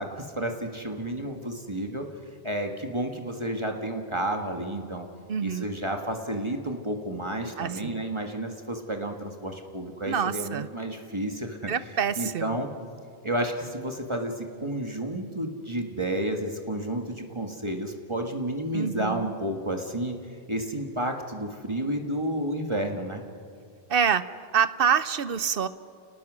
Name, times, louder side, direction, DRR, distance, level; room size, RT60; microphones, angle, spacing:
voice 1, 0.0-2.1 2.4-5.1 5.4-11.7 12.2-12.7 13.2-20.1 20.5-23.2, right 1 dB, 30° right, 3 dB, 1.6 m, -31 dB
voice 2, 5.3-5.7 7.6-8.0 10.0-10.7 11.7-12.6 18.7-19.3 23.9-24.2 24.5-25.7, right 7 dB, 65° right, 14 dB, 0.9 m, -26 dB
29.5 x 19.5 x 6.3 m, 2.4 s
omnidirectional pair, 1.1 m